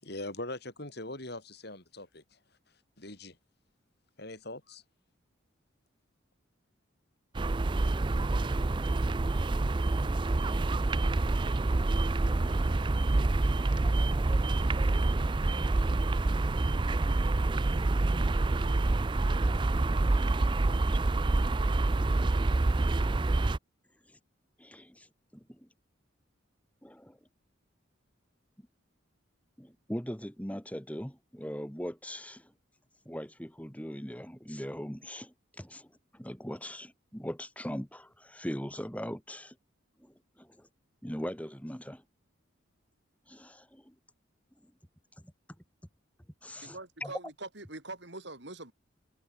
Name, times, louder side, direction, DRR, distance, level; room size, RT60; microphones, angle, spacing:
voice 1, 0.0-3.4 4.2-4.8, left 2 dB, 50° left, 5.8 m, -42 dB
sound 1, 7.3-23.6, right 2 dB, 25° right, 0.4 m, -27 dB
voice 2, 24.6-25.1 25.3-25.7 26.8-27.2 29.6-32.5 33.0-39.6 40.0-40.7 41.0-42.0 43.3-43.9 45.2-45.3 46.4-47.1, equal, 5° left, 4.9 m, -40 dB
voice 3, 46.6-48.7, right 2 dB, 55° right, 4.2 m, -43 dB
head